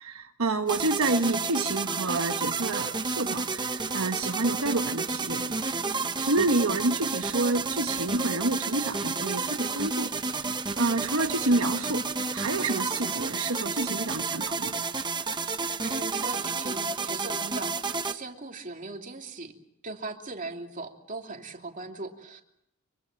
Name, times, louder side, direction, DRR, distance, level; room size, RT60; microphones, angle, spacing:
voice 1, 0.0-5.5 6.2-12.0 12.3-14.8, right 2 dB, 75° right, 5 dB, 1.4 m, -29 dB
sound 1, 0.7-18.1, right 4 dB, 20° right, 1.0 m, -31 dB
voice 2, 15.8-19.5 19.8-22.4, right 3 dB, 40° right, 3 dB, 2.9 m, -39 dB
25.0 x 24.0 x 7.6 m, 0.77 s
head